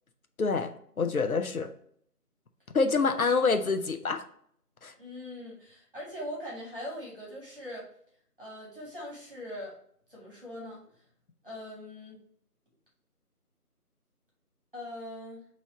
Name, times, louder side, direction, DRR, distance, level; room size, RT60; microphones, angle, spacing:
voice 1, 0.4-0.7 1.0-1.7 2.7-4.2 4.8-4.9, left 4 dB, 65° left, 6 dB, 0.6 m, -26 dB
voice 2, 5.0-7.9 8.4-9.8 10.1-10.8 11.4-12.2 14.7-15.5, left 1 dB, 35° right, -5 dB, 1.6 m, -41 dB
4.7 x 3.0 x 2.9 m, 0.63 s
figure-of-eight pair, 170°, 47 cm